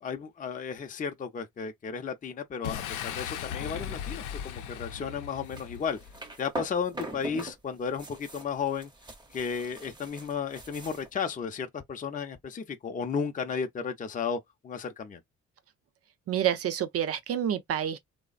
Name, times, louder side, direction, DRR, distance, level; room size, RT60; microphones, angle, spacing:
voice 1, 0.0-6.0 6.4-8.9 9.3-15.2, left 6 dB, 25° left, 0.5 m, -34 dB
Boom, 2.6-6.3, left 9 dB, 85° left, 0.6 m, -37 dB
sound 1, 5.4-7.6 7.8-11.1, right 1 dB, 15° right, 0.6 m, -42 dB
voice 2, 16.3-18.0, right 9 dB, 50° right, 0.6 m, -28 dB
3.1 x 2.0 x 2.4 m
cardioid pair, 90°, 30 cm